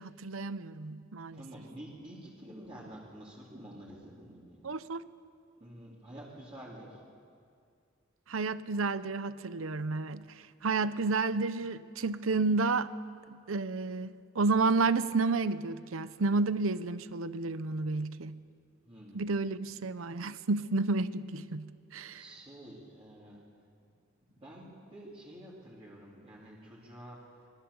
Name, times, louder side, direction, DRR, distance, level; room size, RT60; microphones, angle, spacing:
voice 1, 0.0-1.4 4.6-5.0 8.3-12.9 13.3-18.4 19.1-22.2, right 3 dB, 90° right, 0.8 m, -31 dB
voice 2, 1.3-4.7 5.6-7.0 18.8-19.3 22.1-23.5 24.4-27.5, right 1 dB, 30° right, 3.7 m, -49 dB
26.0 x 23.0 x 7.1 m
head